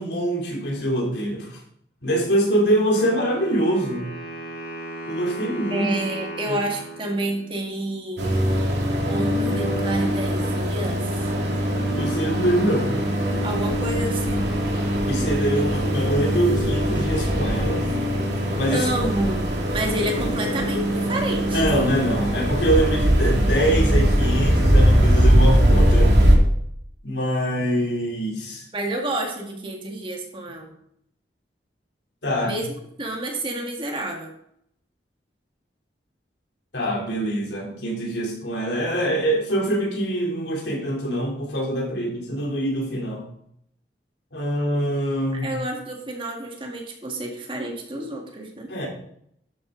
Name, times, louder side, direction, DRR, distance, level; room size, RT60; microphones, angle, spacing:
voice 1, 0.0-1.6 2.0-4.0 5.0-5.9 6.5-6.6 11.9-12.9 15.0-17.9 18.6-18.9 21.5-26.1 27.0-28.6 32.2-32.6 36.7-43.3 44.3-45.5 48.7-48.9, right 1 dB, 80° left, -1 dB, 3.5 m, -24 dB
Wind instrument woodwind instrument, 2.9-7.9, right 1 dB, 60° left, 4.3 m, -36 dB
voice 2, 5.7-8.3 9.1-11.2 13.4-14.5 18.7-19.4 19.7-21.6 28.7-30.7 32.4-32.7 33.0-34.3 45.3-48.7, right 1 dB, 30° right, 1 dB, 1.9 m, -29 dB
sound 1, 8.2-26.4, equal, 75° right, 2.4 m, -21 dB
11.5 x 8.6 x 3.9 m, 0.71 s
head